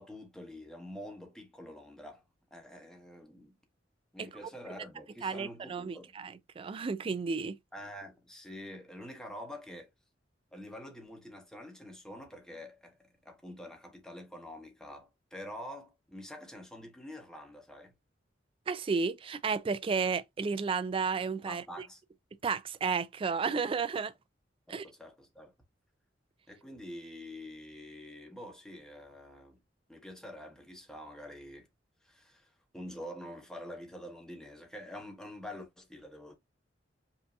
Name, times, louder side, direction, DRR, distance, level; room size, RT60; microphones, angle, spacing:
voice 1, 0.0-2.2 2.5-3.5 4.1-6.1 7.7-9.9 10.5-17.9 21.5-22.0 24.7-25.5 26.5-29.6 29.9-31.7 32.0-32.5 32.7-36.4, left 1 dB, 5° left, 1.0 m, -46 dB
voice 2, 5.2-7.6 18.7-21.6 22.4-24.1 24.7-24.9, right 5 dB, 30° right, 0.3 m, -32 dB
5.4 x 2.7 x 2.4 m
head